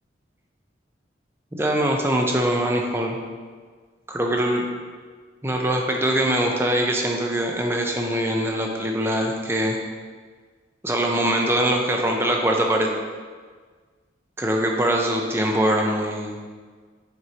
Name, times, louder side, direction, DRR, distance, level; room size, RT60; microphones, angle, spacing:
voice 1, 1.5-3.2 4.1-4.7 5.4-9.8 10.8-12.9 14.4-16.4, right 1 dB, 15° right, 1 dB, 0.6 m, -22 dB
9.4 x 4.5 x 2.9 m, 1.5 s
head